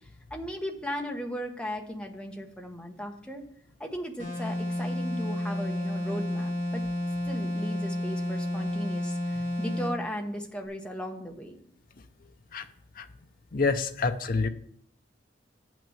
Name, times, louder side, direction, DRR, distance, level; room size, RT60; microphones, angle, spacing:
voice 1, 0.3-3.4 3.8-6.8 7.3-11.6, equal, 5° left, 2 dB, 1.1 m, -37 dB
sound 1, 4.2-10.0, left 1 dB, 30° left, 3.3 m, -31 dB
voice 2, 13.5-14.5, left 4 dB, 50° left, 7 dB, 0.6 m, -27 dB
7.8 x 6.1 x 7.2 m, 0.64 s
head